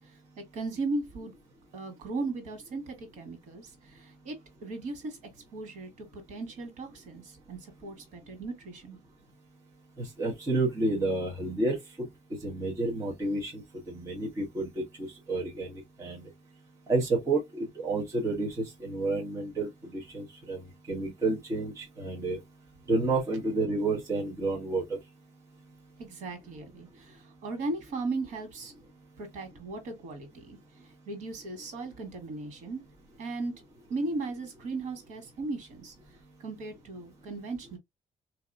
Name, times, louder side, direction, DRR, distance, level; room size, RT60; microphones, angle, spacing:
voice 1, 0.4-1.3 1.7-5.2 5.5-9.0 26.0-28.7 29.2-30.6 31.1-32.8 33.2-33.5 33.9-35.9 36.4-37.8, right 3 dB, 85° right, 1.7 m, -37 dB
voice 2, 10.0-16.3 16.9-22.4 22.9-25.0 25.6-25.8, right 2 dB, 25° right, 1.2 m, -30 dB
3.8 x 2.8 x 2.6 m
cardioid pair, 160°, 13 cm